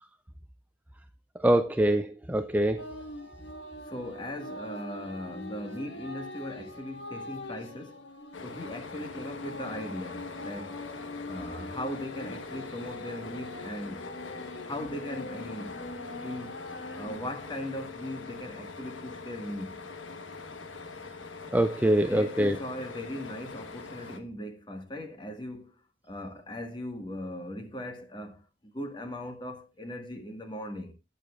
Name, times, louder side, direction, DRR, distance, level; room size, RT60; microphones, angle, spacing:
voice 1, 1.4-2.8 21.5-22.6, right 1 dB, 10° right, 0.4 m, -24 dB
sound 1, 2.8-17.3, left 1 dB, 70° left, 1.7 m, -43 dB
voice 2, 3.9-8.1 8.4-10.9 11.2-14.0 14.6-15.9 16.2-16.6 17.0-19.8 21.5-21.6 22.1-30.9, left 1 dB, 25° left, 1.7 m, -39 dB
sound 2, 8.3-24.2, left 4 dB, 90° left, 1.3 m, -43 dB
18.5 x 6.8 x 2.4 m
head